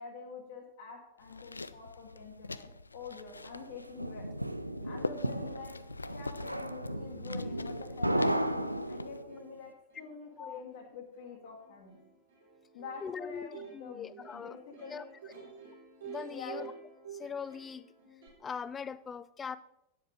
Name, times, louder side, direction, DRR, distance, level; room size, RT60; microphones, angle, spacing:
voice 1, 0.0-4.3 4.8-5.7 6.1-12.0 12.7-14.1 14.3-15.5 16.3-16.7, left 5 dB, 55° left, -1 dB, 2.1 m, -46 dB
sound 1, 1.2-9.2, left 3 dB, 80° left, 0.3 m, -44 dB
sound 2, 3.5-9.4, right 1 dB, 90° right, 0.5 m, -34 dB
Plucked string instrument, 4.8-18.3, right 7 dB, 65° right, 3.7 m, -52 dB
voice 2, 13.0-14.6 14.9-15.3 16.0-16.7 17.1-17.9 18.4-19.6, left 6 dB, 20° left, 16 dB, 0.5 m, -41 dB
9.5 x 7.8 x 5.1 m, 0.83 s
figure-of-eight pair, 90°, 0 cm